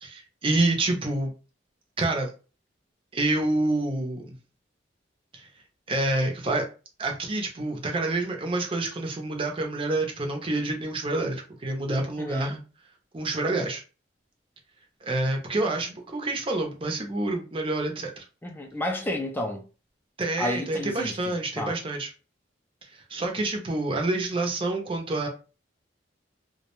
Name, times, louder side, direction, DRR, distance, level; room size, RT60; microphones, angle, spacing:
voice 1, 0.0-1.3 2.0-2.3 3.1-4.4 5.3-5.5 5.9-6.7 7.0-12.6 13.1-13.8 15.0-18.2 20.2-22.1 23.1-25.3, right 2 dB, 30° right, 0.6 m, -27 dB
voice 2, 12.2-12.6 18.4-19.7 20.4-21.8, left 1 dB, 10° left, 0.4 m, -31 dB
2.3 x 2.1 x 2.9 m
head